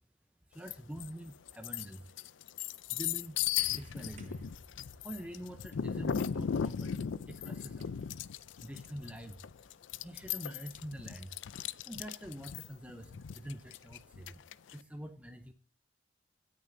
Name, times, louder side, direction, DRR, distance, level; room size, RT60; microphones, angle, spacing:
voice 1, 0.5-2.1 2.6-3.4 3.7-4.5 5.0-7.0 7.3-8.0 8.6-9.7 10.0-11.4 11.9-14.4 14.7-15.5, equal, 5° right, 6 dB, 0.6 m, -46 dB
sound 1, 0.7-1.1 1.5-14.7, left 8 dB, 85° left, 0.4 m, -37 dB
sound 2, 3.6-9.2 10.2-10.3, right 2 dB, 40° right, 1.1 m, -58 dB
17.0 x 6.7 x 2.6 m, 0.34 s
head